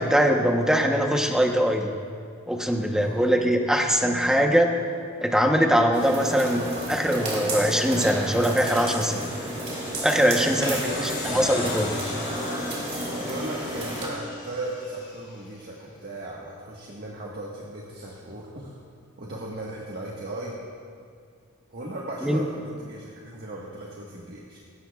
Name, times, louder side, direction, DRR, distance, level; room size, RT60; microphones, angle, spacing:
voice 1, 0.0-1.9 2.5-4.7 5.2-9.3 10.0-11.9 22.2-22.4, equal, 5° right, 2 dB, 0.9 m, -22 dB
voice 2, 3.0-3.3 10.5-11.1 13.2-18.8 19.2-20.6 21.7-24.6, right 1 dB, 45° right, -3 dB, 1.5 m, -37 dB
sound 1, 5.9-14.1, right 1 dB, 30° right, 2.8 m, -31 dB
sound 2, 8.7-15.5, left 4 dB, 55° left, 3.2 m, -40 dB
20.0 x 17.0 x 2.4 m, 2.3 s
head